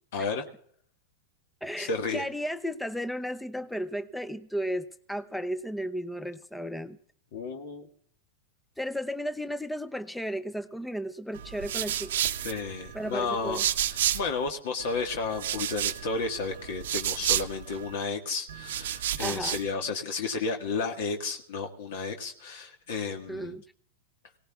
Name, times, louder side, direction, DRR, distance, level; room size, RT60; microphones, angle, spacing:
voice 1, 0.1-0.4 1.8-2.2 7.3-7.9 12.4-13.6 13.9-23.5, left 4 dB, 70° left, 1.6 m, -32 dB
voice 2, 1.6-7.0 8.8-12.2 12.9-13.6 19.2-19.6 23.3-23.6, equal, 5° left, 0.5 m, -34 dB
sound 1, 11.3-14.5 14.8-17.9 18.5-19.7, right 11 dB, 80° right, 0.8 m, -31 dB
23.0 x 17.5 x 2.4 m
hypercardioid pair, 120°, 0 cm